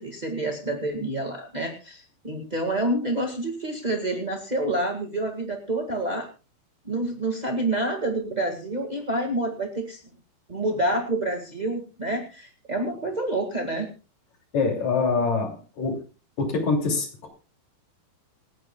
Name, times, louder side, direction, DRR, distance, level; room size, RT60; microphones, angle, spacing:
voice 1, 0.0-6.3 6.8-10.0 10.5-13.9, right 1 dB, 25° right, 1 dB, 0.9 m, -28 dB
voice 2, 14.5-16.0 16.4-17.3, left 4 dB, 50° left, 2 dB, 4.0 m, -25 dB
28.0 x 9.9 x 2.3 m, 0.32 s
omnidirectional pair, 4.2 m